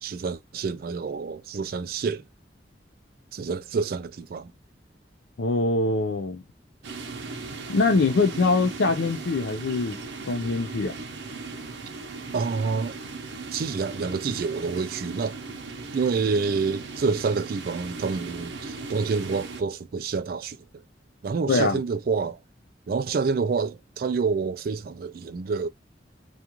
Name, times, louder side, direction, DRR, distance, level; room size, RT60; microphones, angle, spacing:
voice 1, 0.0-2.3 3.3-4.5 12.3-13.0 13.5-15.4 15.9-20.8 21.2-22.4 22.9-25.7, right 5 dB, 50° right, 0.3 m, -28 dB
voice 2, 5.4-6.4 7.7-10.0 10.3-10.9 21.5-21.8, left 3 dB, 85° left, 0.5 m, -23 dB
sound 1, 6.8-19.6, right 3 dB, 80° right, 0.7 m, -37 dB
2.5 x 2.4 x 2.8 m
head